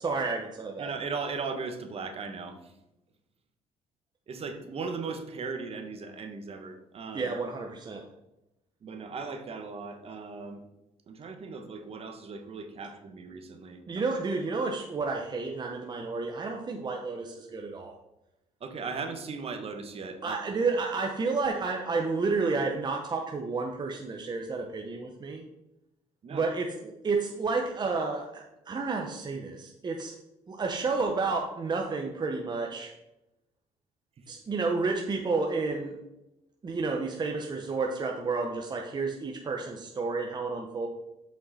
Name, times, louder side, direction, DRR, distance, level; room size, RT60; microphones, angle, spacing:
voice 1, 0.0-0.9 7.1-8.0 13.9-18.0 20.2-25.4 26.3-30.1 30.5-32.9 34.3-36.0 36.6-40.9, right 4 dB, 35° right, 2 dB, 1.0 m, -31 dB
voice 2, 0.8-2.7 4.3-7.3 8.8-10.6 11.1-13.8 18.6-20.4 26.2-26.4, right 4 dB, 50° right, 6 dB, 1.3 m, -37 dB
7.8 x 5.7 x 4.2 m, 0.91 s
cardioid pair, 95°, 13 cm